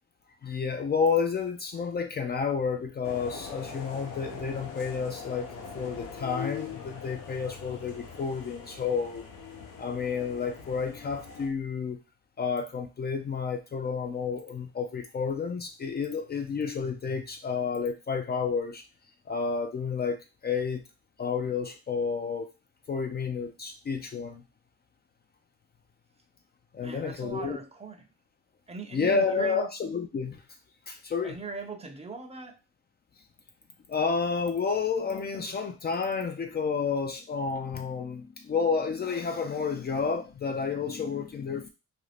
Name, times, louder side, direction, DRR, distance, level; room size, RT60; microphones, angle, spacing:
voice 1, 0.4-9.2 9.8-12.0 12.4-18.8 19.3-20.8 21.2-22.5 22.9-24.4 26.7-27.6 28.9-30.4 30.9-31.4 33.9-41.7, left 5 dB, 35° left, 5 dB, 0.4 m, -30 dB
sound 1, 3.0-11.5, left 5 dB, 80° left, 0.8 m, -42 dB
voice 2, 26.8-28.1 28.7-29.7 31.2-32.6, right 4 dB, 20° right, 4 dB, 0.5 m, -40 dB
2.5 x 2.3 x 3.2 m, 0.28 s
cardioid pair, 90°, 30 cm